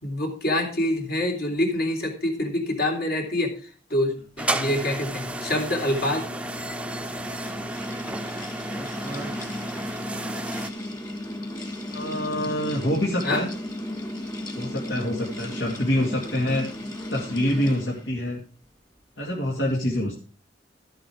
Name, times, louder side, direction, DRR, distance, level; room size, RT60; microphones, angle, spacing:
voice 1, 0.0-3.5 3.9-6.2 13.2-13.4, left 1 dB, 60° left, 1 dB, 3.5 m, -26 dB
sound 1, 4.4-10.7, right 1 dB, 5° right, 0.6 m, -32 dB
sound 2, 6.1-18.2, left 1 dB, 20° left, 2.1 m, -35 dB
voice 2, 8.7-9.3 11.9-13.5 14.5-16.7 17.1-18.4 19.2-20.1, left 1 dB, 75° left, -2 dB, 2.3 m, -26 dB
13.5 x 8.0 x 4.8 m, 0.39 s
head